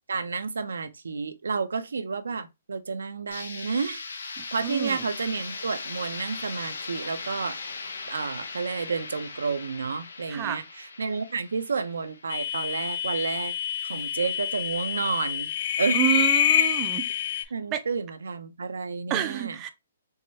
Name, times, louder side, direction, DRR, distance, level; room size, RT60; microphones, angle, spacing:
voice 1, 0.1-7.6 8.1-13.5 13.9-15.5 15.8-16.0 16.6-16.7 17.5-19.6, right 5 dB, 85° right, 0.5 m, -31 dB
sound 1, 3.3-13.1, left 4 dB, 85° left, 0.7 m, -39 dB
voice 2, 4.4-5.0 10.3-10.6 15.9-17.1 17.7-17.8 19.1-19.7, right 12 dB, 25° right, 0.4 m, -29 dB
sound 2, 12.3-17.4, left 10 dB, 55° left, 0.4 m, -26 dB
4.7 x 2.2 x 2.7 m
hypercardioid pair, 145°, 0 cm